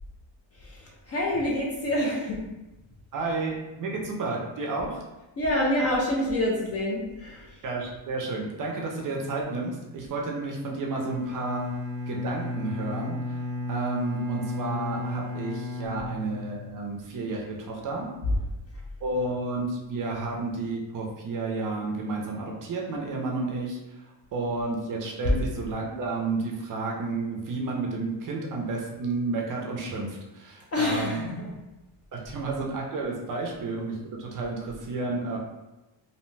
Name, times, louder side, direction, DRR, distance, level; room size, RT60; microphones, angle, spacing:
voice 1, 0.6-2.4 5.4-7.6 30.7-31.5, left 1 dB, 35° left, -3 dB, 0.4 m, -27 dB
voice 2, 3.1-5.0 7.6-11.7 12.1-13.4 13.7-18.1 19.0-31.2 32.1-35.4, right 3 dB, 40° right, -1 dB, 0.5 m, -31 dB
Bowed string instrument, 10.9-16.9, left 2 dB, 85° left, 1.4 m, -34 dB
2.7 x 2.1 x 3.1 m, 1.0 s
cardioid pair, 150°, 49 cm